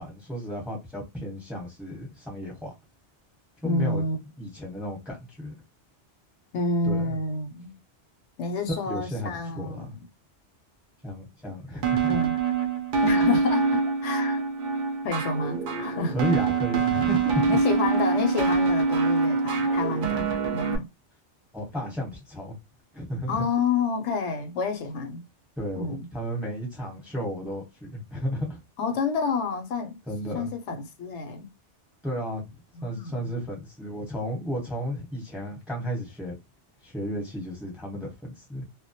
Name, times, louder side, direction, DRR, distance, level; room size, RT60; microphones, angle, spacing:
voice 1, 0.0-2.7 3.6-4.0 4.4-5.5 6.8-7.2 8.8-10.0 11.0-12.1 16.1-17.6 21.5-22.6 22.9-23.5 25.6-28.6 30.1-30.5 32.0-36.3 36.8-38.6, equal, ahead, 0.8 m, -33 dB
voice 2, 3.6-4.2 6.5-7.8 8.4-9.9 12.1-12.4 13.0-14.4 15.0-16.2 17.5-20.9 23.3-25.2 25.7-26.1 28.8-30.0 30.3-31.5 32.7-33.3, left 4 dB, 80° left, 0.9 m, -29 dB
sound 1, 11.8-20.8, right 4 dB, 55° right, 0.6 m, -25 dB
2.2 x 2.1 x 2.7 m
omnidirectional pair, 1.2 m